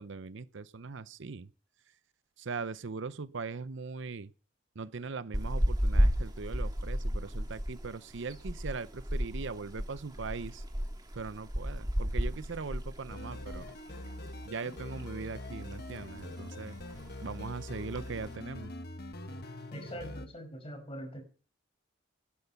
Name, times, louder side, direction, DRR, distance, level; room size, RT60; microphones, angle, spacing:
voice 1, 0.0-1.5 2.4-4.3 4.8-10.6 11.2-13.7 14.5-16.8 17.2-18.7, right 4 dB, 65° right, 0.7 m, -40 dB
sound 1, 5.3-13.9 14.1-14.3 14.7-15.6 15.9-16.3 16.5-16.6 16.8-17.2 17.8-18.3, equal, 20° right, 2.0 m, -32 dB
sound 2, 13.1-20.3, left 1 dB, 50° left, 1.4 m, -43 dB
voice 2, 19.7-21.2, equal, 30° left, 5.4 m, -42 dB
18.5 x 10.5 x 5.8 m
head